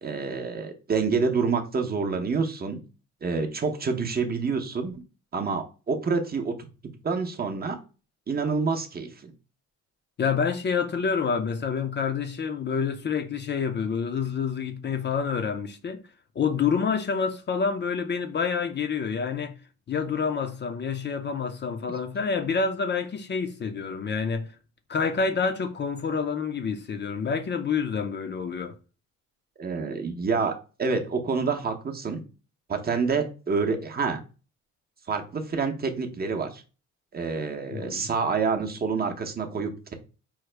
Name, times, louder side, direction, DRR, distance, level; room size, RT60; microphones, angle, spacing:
voice 1, 0.0-2.8 3.2-5.0 5.3-6.5 7.0-7.8 8.3-9.3 29.6-30.5 30.8-32.2 32.7-34.2 35.1-36.6 37.1-39.9, right 4 dB, 30° right, 0.7 m, -27 dB
voice 2, 10.2-16.0 16.4-19.6 19.9-24.5 24.9-28.7 37.7-38.1, left 5 dB, 35° left, 0.5 m, -28 dB
4.7 x 2.0 x 3.2 m
cardioid pair, 90°, 30 cm